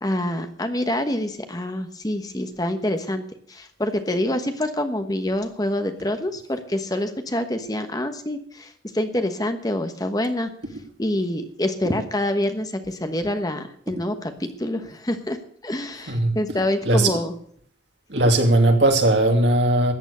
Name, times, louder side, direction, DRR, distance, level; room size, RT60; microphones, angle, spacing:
voice 1, 0.0-3.2 3.5-10.5 11.0-15.4 15.6-17.3, left 1 dB, 20° left, 1.2 m, -26 dB
voice 2, 18.1-19.9, right 1 dB, 75° right, 2.8 m, -18 dB
14.0 x 9.1 x 6.8 m
head